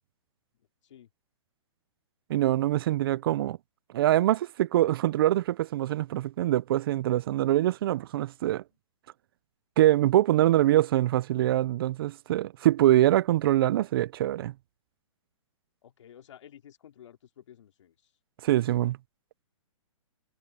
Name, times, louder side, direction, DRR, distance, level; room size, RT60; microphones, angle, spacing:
voice 1, 2.3-3.6 3.9-8.6 9.8-14.5 18.4-19.0, right 14 dB, 45° right, 0.5 m, -24 dB
voice 2, 15.8-18.1, left 10 dB, 65° left, 2.9 m, -52 dB
hypercardioid pair, 150°, 17 cm